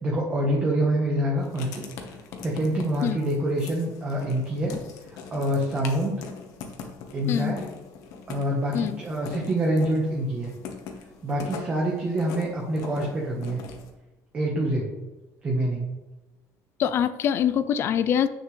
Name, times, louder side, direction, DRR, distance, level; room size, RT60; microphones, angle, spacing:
voice 1, 0.0-1.8 2.4-4.8 5.1-6.2 7.1-7.7 8.3-10.5 11.2-13.6 14.3-14.9 15.4-15.9, right 1 dB, 20° right, -2 dB, 1.1 m, -26 dB
Writing, 1.4-13.9, left 6 dB, 60° left, 1.1 m, -42 dB
voice 2, 16.8-18.3, left 9 dB, 35° left, 14 dB, 0.3 m, -24 dB
8.9 x 6.4 x 3.2 m, 1.1 s
cardioid pair, 175°, 7 cm